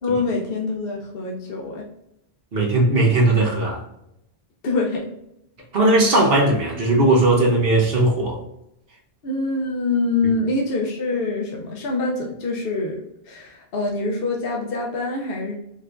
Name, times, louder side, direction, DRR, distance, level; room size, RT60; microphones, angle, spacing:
voice 1, 0.0-1.9 4.6-5.1 9.2-15.5, left 3 dB, 70° left, 0 dB, 1.0 m, -25 dB
voice 2, 2.5-3.8 5.7-8.4 10.2-10.3, right 2 dB, 70° right, 0 dB, 1.2 m, -18 dB
4.7 x 3.4 x 2.6 m, 0.79 s
omnidirectional pair, 1.0 m